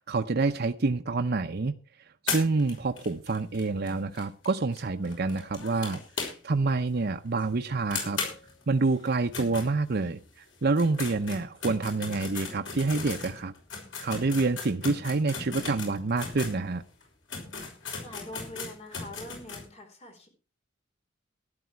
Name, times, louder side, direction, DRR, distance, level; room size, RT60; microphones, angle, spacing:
voice 1, 0.0-1.7 2.2-8.2 8.7-10.2 10.6-13.5 14.0-16.8, right 3 dB, 55° right, 0.7 m, -27 dB
sound 1, 2.3-6.7 7.0-7.1 7.4-7.5 7.9-10.2 10.6-16.6 17.0-17.1 17.3-19.7, left 5 dB, 75° left, 5.9 m, -37 dB
voice 2, 18.0-20.3, left 1 dB, 35° left, 4.3 m, -44 dB
13.5 x 11.5 x 4.6 m
head